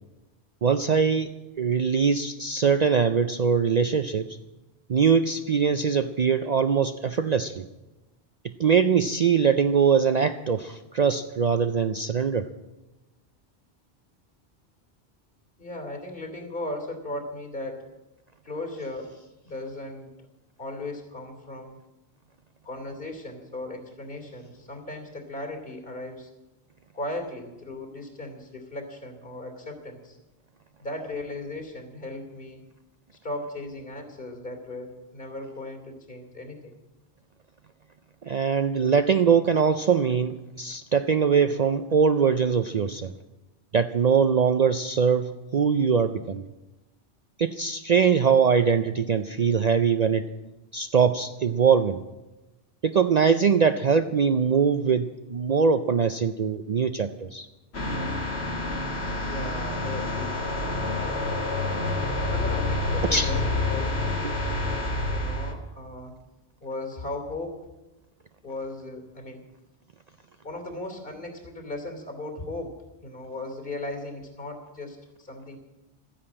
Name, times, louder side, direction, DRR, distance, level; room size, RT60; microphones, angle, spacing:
voice 1, 0.6-1.3 1.6-4.4 4.9-7.7 8.6-12.5 38.2-43.1 43.7-46.5 47.4-50.3 50.7-52.0 52.8-57.5 63.1-63.3 64.2-64.4, right 6 dB, 50° right, 9 dB, 0.5 m, -22 dB
voice 2, 15.6-17.9 18.4-19.1 19.4-20.1 20.6-21.8 22.6-26.3 26.9-30.2 30.8-32.6 33.2-36.7 59.2-60.4 61.0-61.4 62.2-64.0 65.1-66.1 66.6-67.6 68.4-69.4 70.4-72.7 73.0-75.6, left 2 dB, 55° left, 4 dB, 3.3 m, -37 dB
sound 1, 57.7-65.5, left 2 dB, 70° left, 2.1 m, -28 dB
13.5 x 10.0 x 8.7 m, 1.1 s
omnidirectional pair, 1.1 m